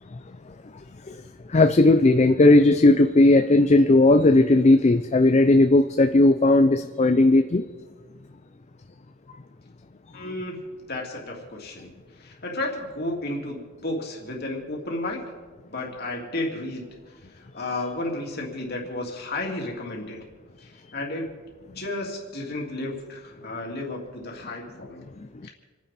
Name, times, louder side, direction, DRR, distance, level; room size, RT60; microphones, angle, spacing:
voice 1, 1.5-7.6, left 2 dB, 30° left, 8 dB, 0.5 m, -17 dB
voice 2, 10.1-11.9 12.2-15.2 15.7-16.9 17.4-20.3 20.6-21.3 21.7-25.0 25.4-25.5, left 2 dB, 50° left, -1 dB, 3.0 m, -32 dB
29.5 x 10.0 x 4.3 m, 1.5 s
head